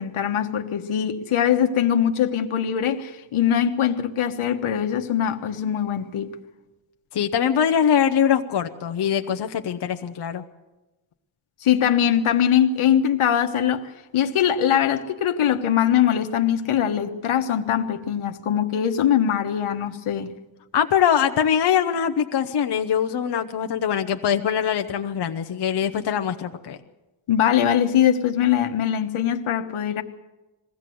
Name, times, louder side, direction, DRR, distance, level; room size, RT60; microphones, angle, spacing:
voice 1, 0.0-6.3 11.6-20.3 27.3-30.0, left 9 dB, 85° left, 7 dB, 1.3 m, -22 dB
voice 2, 7.1-10.4 20.7-26.8, left 8 dB, 55° left, 6 dB, 0.9 m, -22 dB
21.5 x 16.0 x 7.7 m, 1.1 s
wide cardioid pair, 155°, 48 cm